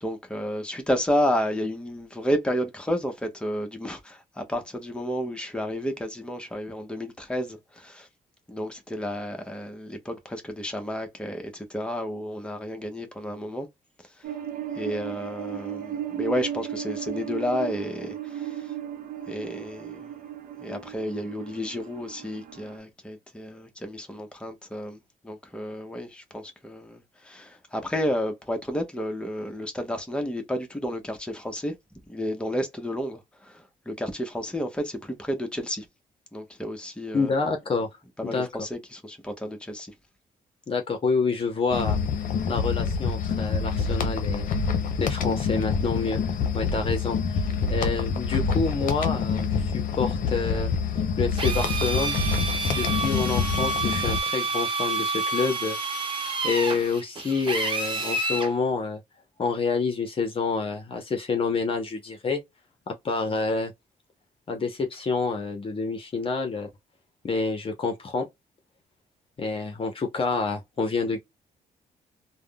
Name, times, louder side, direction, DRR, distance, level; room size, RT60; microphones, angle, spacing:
voice 1, 0.0-8.1 8.5-13.7 14.8-18.6 19.3-20.1 20.6-25.0 25.2-31.7 32.1-35.9 36.3-37.3 38.2-39.9, equal, 5° left, 0.9 m, -31 dB
sound 1, 14.2-22.8, right 10 dB, 75° right, 0.7 m, -36 dB
voice 2, 37.1-37.9 38.2-38.5 40.7-42.0 42.5-44.5 45.0-46.2 46.5-50.7 51.2-52.2 52.7-55.8 56.4-59.0 59.4-62.4 62.9-63.7 64.5-66.7 67.2-68.3 69.4-71.2, left 4 dB, 40° left, 0.8 m, -28 dB
sound 2, 41.7-54.2, left 5 dB, 70° left, 0.7 m, -26 dB
Drill, 51.4-58.5, right 3 dB, 35° right, 1.0 m, -29 dB
3.4 x 2.2 x 2.2 m
cardioid pair, 95°, 14 cm